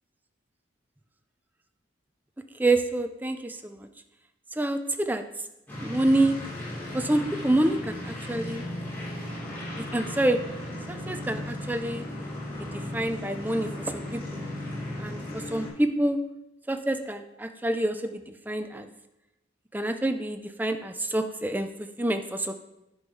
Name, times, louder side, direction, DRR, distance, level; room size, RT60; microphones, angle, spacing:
voice 1, 2.5-3.9 4.5-5.2 5.8-6.4 6.9-8.6 9.8-10.4 10.9-12.0 12.6-14.4 15.0-16.2 16.7-18.9 19.7-22.5, right 1 dB, 10° right, 7 dB, 0.5 m, -27 dB
sound 1, 5.7-15.7, left 1 dB, 10° left, 3.1 m, -36 dB
9.8 x 4.7 x 5.5 m, 0.93 s
head